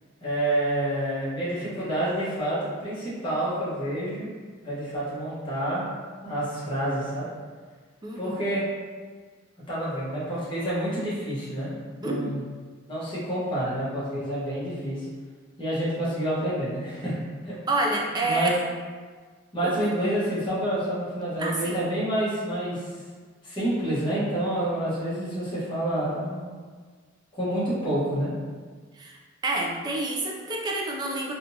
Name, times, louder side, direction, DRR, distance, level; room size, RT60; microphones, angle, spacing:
voice 1, 0.2-4.3 4.6-5.9 6.2-7.3 8.2-8.7 9.7-12.4 12.9-15.0 15.6-17.2 17.4-17.5 18.2-18.5 19.5-22.8 23.4-26.5 27.3-28.3, right 1 dB, 25° left, -10 dB, 1.2 m, -28 dB
voice 2, 8.0-8.4 12.0-12.3 17.7-18.5 19.6-19.7 21.4-21.8 29.0-29.2 29.4-31.3, right 2 dB, 20° right, -1 dB, 0.4 m, -28 dB
3.7 x 2.4 x 2.8 m, 1.5 s
head